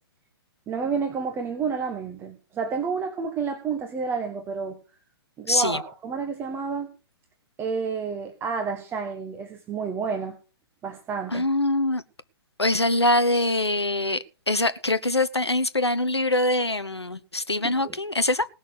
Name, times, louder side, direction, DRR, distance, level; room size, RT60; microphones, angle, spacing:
voice 1, 0.7-4.8 5.4-6.9 7.6-10.4 10.8-11.5 17.8-17.9, right 5 dB, 15° right, 1.4 m, -30 dB
voice 2, 5.5-5.8 11.3-12.0 12.6-18.5, left 2 dB, 90° left, 0.9 m, -23 dB
18.5 x 6.2 x 6.4 m
figure-of-eight pair, 120°, 13 cm